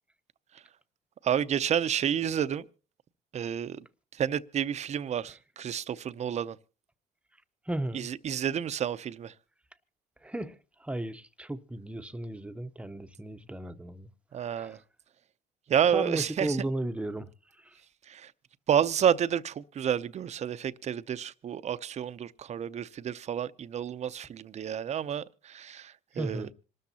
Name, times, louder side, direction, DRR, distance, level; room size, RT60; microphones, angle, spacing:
voice 1, 1.2-2.6 3.3-3.9 4.2-6.6 7.9-9.3 14.3-14.8 15.7-16.6 18.1-18.3 18.7-26.5, right 9 dB, 40° right, 0.6 m, -30 dB
voice 2, 7.7-8.1 10.2-10.5 10.8-14.1 14.4-14.8 15.9-17.3 26.2-26.5, right 1 dB, 5° right, 0.8 m, -35 dB
26.5 x 13.0 x 2.8 m
cardioid pair, 110°, 17 cm